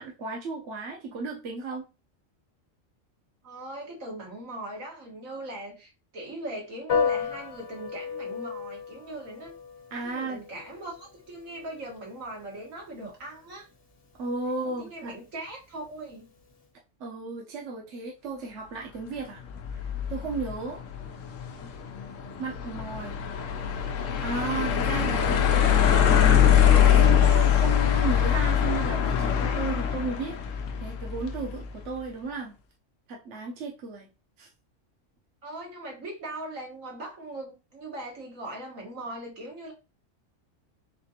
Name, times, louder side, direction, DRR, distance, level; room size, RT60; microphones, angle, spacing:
voice 1, 0.0-1.9 9.9-10.4 14.2-15.1 17.0-19.4 19.7-19.8 20.1-20.8 22.4-23.2 24.2-26.3 26.8-30.4 30.8-32.5 33.1-34.1 34.4-34.5, right 4 dB, 65° right, 1.2 m, -34 dB
voice 2, 3.4-9.5 10.0-13.7 14.6-16.3 21.5-21.7 35.4-39.7, right 1 dB, 85° right, 2.0 m, -39 dB
Piano, 6.9-16.6, left 6 dB, 50° left, 1.3 m, -36 dB
sound 1, 19.5-31.7, left 9 dB, 75° left, 1.0 m, -23 dB
4.2 x 3.7 x 2.8 m
omnidirectional pair, 1.3 m